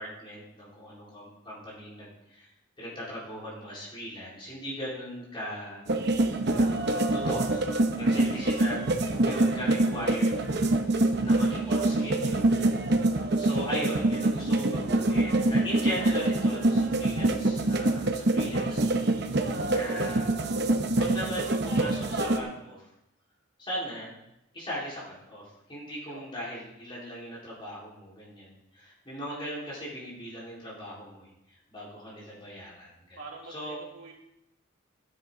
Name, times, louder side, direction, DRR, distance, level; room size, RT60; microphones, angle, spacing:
voice 1, 0.0-2.5 2.8-5.8 6.6-7.7 8.0-10.4 11.2-12.7 13.4-18.9 19.3-20.3 21.0-22.9 23.6-24.2 24.5-33.2 33.5-33.8, equal, 25° left, -6 dB, 4.1 m, -39 dB
sound 1, 5.9-22.4, right 2 dB, 55° right, 0.9 m, -25 dB
voice 2, 33.2-34.1, right 3 dB, 90° right, -2 dB, 2.8 m, -45 dB
12.5 x 9.4 x 3.8 m, 0.84 s
head